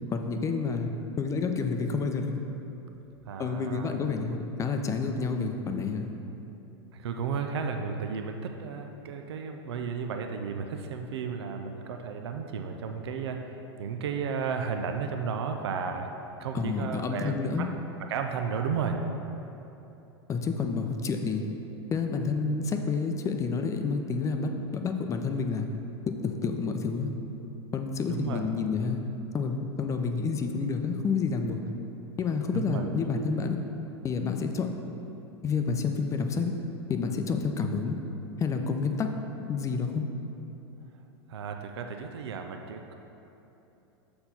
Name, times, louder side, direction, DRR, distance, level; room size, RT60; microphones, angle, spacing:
voice 1, 0.1-2.4 3.4-6.1 16.5-17.7 20.3-21.4 21.9-25.7 26.1-27.1 27.7-29.0 29.3-31.6 32.2-33.6 34.0-34.8 35.4-36.5 36.9-38.0 38.4-39.1 39.4-40.1, left 5 dB, 20° left, 5 dB, 0.6 m, -29 dB
voice 2, 3.3-4.0 6.9-13.5 13.8-16.1 16.4-17.7 18.1-19.0 28.1-28.5 32.5-32.9 41.3-42.9, right 6 dB, 70° right, 5 dB, 0.5 m, -33 dB
6.7 x 4.3 x 5.7 m, 3.0 s
hypercardioid pair, 100°, 14 cm